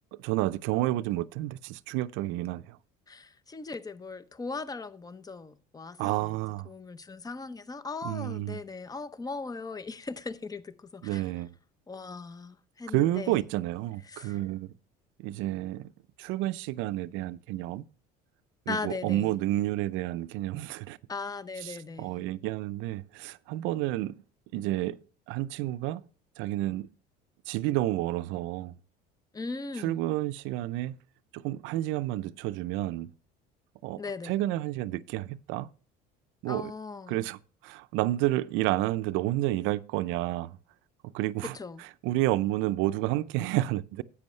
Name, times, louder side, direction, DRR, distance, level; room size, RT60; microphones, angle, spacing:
voice 1, 0.2-2.8 6.0-6.7 8.0-8.6 11.0-11.5 12.9-14.7 15.2-15.9 16.2-17.8 18.7-21.0 21.6-24.2 24.5-25.0 25.3-26.0 26.4-26.9 27.5-28.7 29.8-30.9 31.3-33.1 33.8-35.7 36.4-36.7 37.1-37.4 37.6-40.6 41.1-41.5 42.0-44.0, right 16 dB, 75° right, 0.6 m, -30 dB
voice 2, 3.1-6.4 6.6-11.3 11.9-13.4 14.0-14.4 18.7-19.3 21.1-22.2 29.3-30.0 34.0-34.4 36.5-37.2 41.4-41.8, left 4 dB, 20° left, 0.7 m, -39 dB
10.5 x 8.4 x 3.2 m
supercardioid pair, 90°, 20 cm